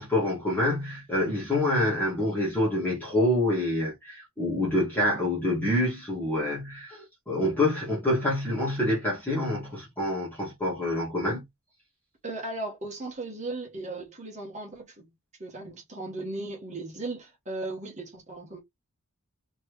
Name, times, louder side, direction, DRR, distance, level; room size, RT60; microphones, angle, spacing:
voice 1, 0.0-11.4, left 1 dB, 10° left, 2.2 m, -27 dB
voice 2, 12.2-15.1 15.4-18.6, right 2 dB, 30° right, 1.6 m, -37 dB
4.5 x 3.2 x 3.2 m
head